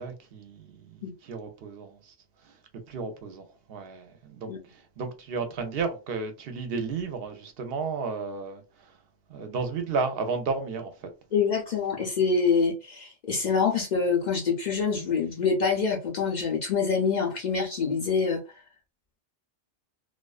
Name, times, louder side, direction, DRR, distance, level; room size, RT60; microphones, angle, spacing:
voice 1, 0.0-2.1 2.4-2.5 2.9-8.9 9.3-11.1, right 4 dB, 65° right, 0.7 m, -33 dB
voice 2, 11.3-18.4, left 5 dB, 55° left, 0.5 m, -25 dB
2.3 x 2.2 x 2.3 m
omnidirectional pair, 1.2 m